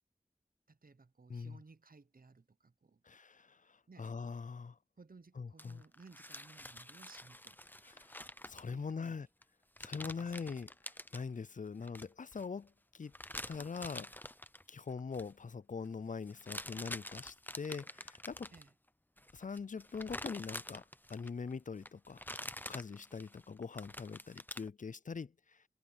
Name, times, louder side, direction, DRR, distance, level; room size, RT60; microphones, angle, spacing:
voice 1, 0.7-3.0 3.9-4.1 5.0-7.6 8.7-9.3 10.0-10.5 18.5-18.7, right 4 dB, 70° right, 0.8 m, -59 dB
voice 2, 3.0-4.8 5.4-5.8 7.8-8.0 8.5-9.3 9.8-10.7 11.1-13.1 13.5-14.1 14.7-18.5 19.3-20.8 21.1-22.2 22.7-25.6, left 5 dB, 55° left, 0.4 m, -43 dB
sound 1, 5.6-9.1 9.4-9.5 9.8-11.2 11.8-12.4 13.1-14.6 15.0-15.3 16.3-18.7 19.2-21.5 21.8-24.7, left 1 dB, 10° left, 0.7 m, -47 dB
wide cardioid pair, 50°, 16 cm